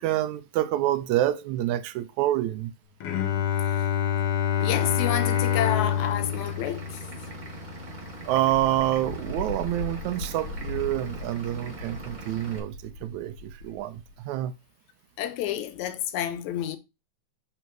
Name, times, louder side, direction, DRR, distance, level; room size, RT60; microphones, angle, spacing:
voice 1, 0.0-2.7 8.3-14.5, right 14 dB, 80° right, 2.0 m, -27 dB
Bowed string instrument, 3.0-8.7, left 9 dB, 65° left, 1.6 m, -27 dB
voice 2, 4.6-7.0 15.2-16.8, left 11 dB, 80° left, 2.0 m, -30 dB
Vehicle / Engine, 4.6-12.6, right 2 dB, 50° right, 0.5 m, -42 dB
Wind, 8.5-14.2, left 2 dB, 40° left, 1.5 m, -39 dB
6.9 x 4.0 x 4.6 m
omnidirectional pair, 3.4 m